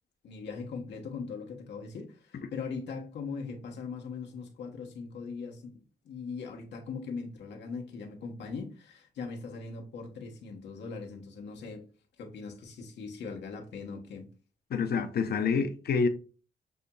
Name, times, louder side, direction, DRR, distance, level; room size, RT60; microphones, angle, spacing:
voice 1, 0.2-11.8 12.2-14.3, left 4 dB, 85° left, 1.1 m, -40 dB
voice 2, 14.7-16.1, left 5 dB, 65° left, 0.7 m, -27 dB
6.7 x 2.8 x 2.2 m
cardioid pair, 80°, 18 cm